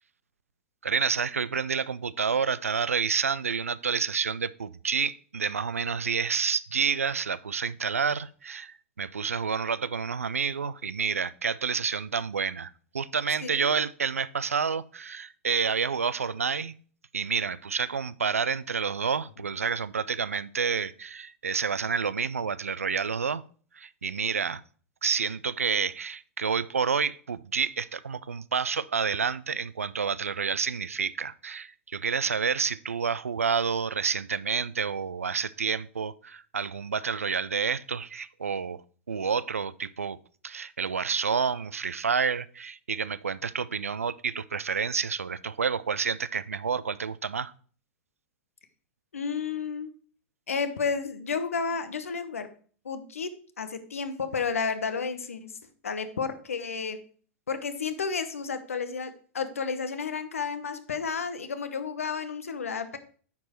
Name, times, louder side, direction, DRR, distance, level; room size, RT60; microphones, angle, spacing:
voice 1, 0.8-16.8 17.1-23.4 23.8-24.6 25.0-38.8 39.1-40.2 40.4-47.5, right 6 dB, 85° right, 0.4 m, -29 dB
voice 2, 49.1-49.9 50.5-52.5 52.8-53.3 53.6-55.5 55.8-57.0 57.5-63.0, left 5 dB, 80° left, 0.9 m, -31 dB
9.3 x 4.6 x 4.3 m
hypercardioid pair, 100°, 7 cm